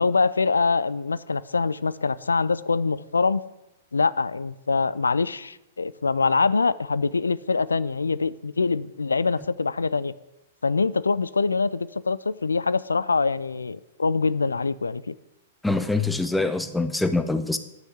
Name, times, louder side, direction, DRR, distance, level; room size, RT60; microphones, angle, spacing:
voice 1, 0.0-3.4 3.9-10.1 10.6-15.1, left 4 dB, 80° left, 18 dB, 0.4 m, -24 dB
voice 2, 15.6-17.6, left 2 dB, 5° left, 9 dB, 0.8 m, -24 dB
10.0 x 6.3 x 8.0 m, 0.91 s
figure-of-eight pair, 105°, 0 cm